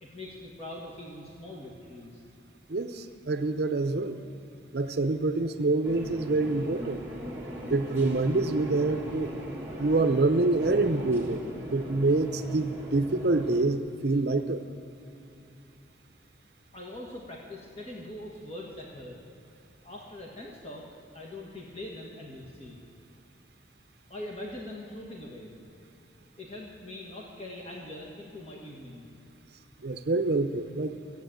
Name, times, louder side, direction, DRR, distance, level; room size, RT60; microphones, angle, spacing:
voice 1, 0.0-2.2 16.7-19.2 19.8-20.9 21.1-22.8 24.1-25.5 26.2-29.0, left 1 dB, 35° left, -2 dB, 1.5 m, -42 dB
voice 2, 2.7-4.2 4.7-7.0 7.7-9.3 9.8-11.4 11.7-14.6 29.8-31.0, right 2 dB, 60° right, 8 dB, 0.6 m, -26 dB
sound 1, 5.8-13.6, equal, 15° right, 1.7 m, -39 dB
15.0 x 8.0 x 9.0 m, 2.8 s
head